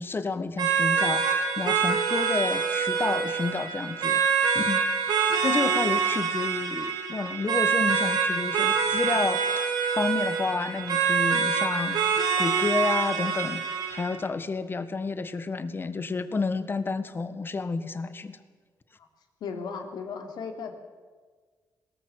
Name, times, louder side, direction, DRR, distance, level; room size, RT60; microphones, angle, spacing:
voice 1, 0.0-4.2 4.5-4.8 5.4-9.7 9.9-18.4, left 4 dB, 30° left, 12 dB, 1.5 m, -30 dB
sound 1, 0.6-14.2, right 6 dB, 80° right, 3.1 m, -26 dB
voice 2, 5.4-5.8 19.0-19.1 19.4-20.8, left 6 dB, 80° left, 5 dB, 3.1 m, -36 dB
21.0 x 18.0 x 8.1 m, 1.5 s
cardioid pair, 95°, 7 cm